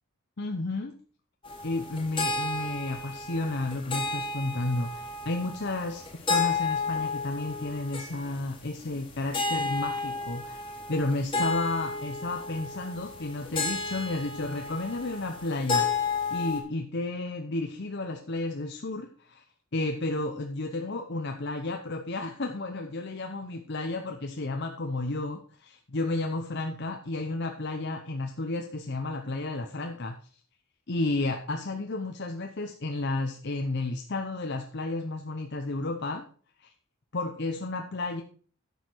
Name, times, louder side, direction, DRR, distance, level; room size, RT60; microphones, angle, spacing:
voice 1, 0.4-0.9 1.6-10.6 10.9-15.9 16.3-19.4 19.7-30.2 30.9-36.2 36.6-36.7 37.1-38.2, left 2 dB, 55° left, 4 dB, 0.8 m, -32 dB
sound 1, 1.4-16.6, left 4 dB, 25° left, 1.8 m, -32 dB
11.0 x 6.6 x 4.6 m, 0.42 s
head